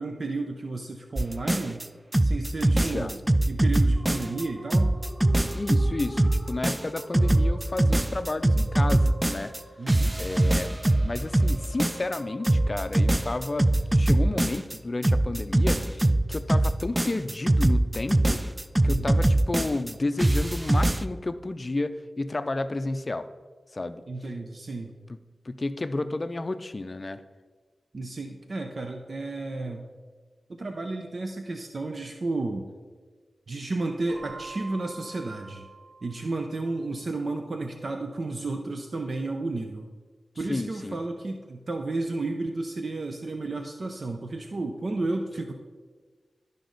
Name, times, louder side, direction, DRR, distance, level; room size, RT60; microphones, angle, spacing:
voice 1, 0.0-1.8 2.2-3.2 3.5-4.9 9.8-10.2 18.9-19.1 24.1-24.9 27.9-29.8 30.5-32.7 33.5-35.7 36.0-39.9 40.4-45.5, right 2 dB, 60° right, 4 dB, 0.6 m, -32 dB
sound 1, 1.2-1.8 2.1-4.4 4.7-9.6 9.9-12.2 12.4-14.8 15.0-19.9 20.2-21.0, right 1 dB, 20° right, 0.3 m, -22 dB
voice 2, 2.7-3.1 5.5-9.5 10.2-10.7 11.0-18.4 18.8-23.3 23.7-24.0 25.5-27.2 40.5-41.0, left 2 dB, 40° left, 11 dB, 0.5 m, -31 dB
sound 2, 3.9-14.4, equal, 40° right, 2.4 m, -44 dB
Keyboard (musical), 34.1-36.8, right 3 dB, 90° right, 2.2 m, -45 dB
12.0 x 5.2 x 3.9 m, 1.5 s
cardioid pair, 55°, 0 cm